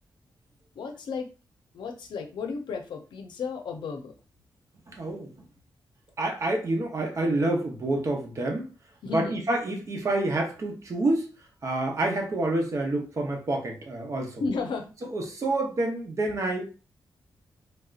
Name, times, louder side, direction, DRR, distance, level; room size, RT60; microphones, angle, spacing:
voice 1, 0.7-1.3 1.7-4.1 9.0-9.4 14.4-14.9, left 4 dB, 90° left, 5 dB, 0.6 m, -33 dB
voice 2, 4.9-5.3 6.2-8.7 9.1-11.2 11.6-14.4 15.1-16.6, right 2 dB, 40° right, 2 dB, 0.8 m, -28 dB
3.4 x 2.8 x 2.4 m, 0.33 s
wide cardioid pair, 160°, 8 cm